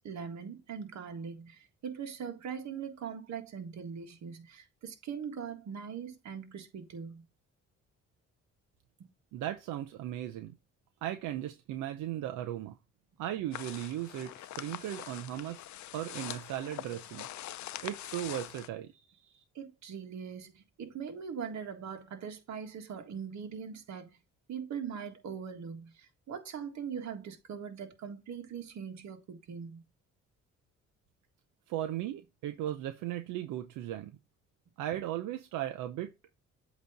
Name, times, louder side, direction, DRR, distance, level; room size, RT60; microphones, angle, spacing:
voice 1, 0.0-7.2 9.0-9.1 19.6-24.2 24.5-29.8, right 7 dB, 65° right, 1.8 m, -41 dB
voice 2, 9.3-10.6 11.0-12.7 13.2-15.7 15.9-17.3 17.8-19.4 31.7-34.2 34.8-36.1, right 12 dB, 90° right, 0.7 m, -37 dB
sound 1, 13.5-18.7, left 13 dB, 70° left, 0.6 m, -43 dB
8.1 x 3.1 x 5.0 m
cardioid pair, 90°, 30 cm